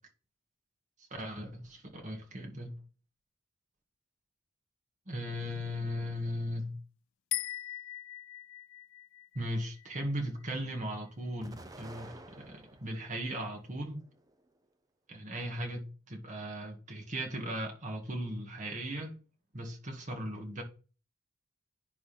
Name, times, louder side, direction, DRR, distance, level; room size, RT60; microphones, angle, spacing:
voice 1, 1.0-2.7 5.1-6.8 9.3-14.0 15.1-19.2 19.5-20.6, equal, 35° right, 2.0 m, -37 dB
sound 1, 7.3-10.7, left 16 dB, 65° left, 0.3 m, -41 dB
Explosion, 11.4-13.1 13.6-14.5, right 1 dB, 15° right, 0.7 m, -51 dB
10.5 x 3.8 x 4.3 m
head